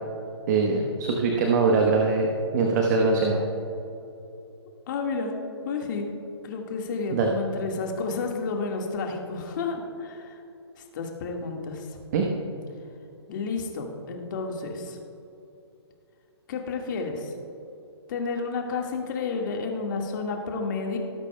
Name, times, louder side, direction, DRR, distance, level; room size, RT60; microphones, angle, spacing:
voice 1, 0.5-3.4 7.1-7.3 12.1-12.3, right 4 dB, 40° right, 1 dB, 1.1 m, -22 dB
voice 2, 4.9-5.4 5.6-6.1 6.4-10.4 10.8-12.0 13.3-15.0 16.5-17.3 18.1-21.0, left 4 dB, 45° left, 1 dB, 1.7 m, -31 dB
18.0 x 8.2 x 2.3 m, 2.8 s
hypercardioid pair, 145°, 14 cm